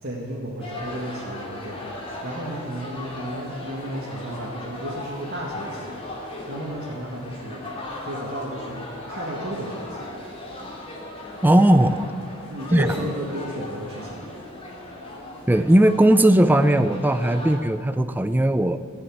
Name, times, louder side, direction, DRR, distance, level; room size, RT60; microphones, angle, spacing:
voice 1, 0.0-10.2 12.5-14.2 17.4-17.5, right 1 dB, 50° right, -5 dB, 2.0 m, -34 dB
sound 1, 0.6-17.6, left 1 dB, 25° left, 2.6 m, -37 dB
voice 2, 11.4-12.0 12.7-12.9 15.5-18.8, right 1 dB, 10° right, 11 dB, 0.4 m, -17 dB
15.5 x 7.1 x 9.9 m, 2.2 s
head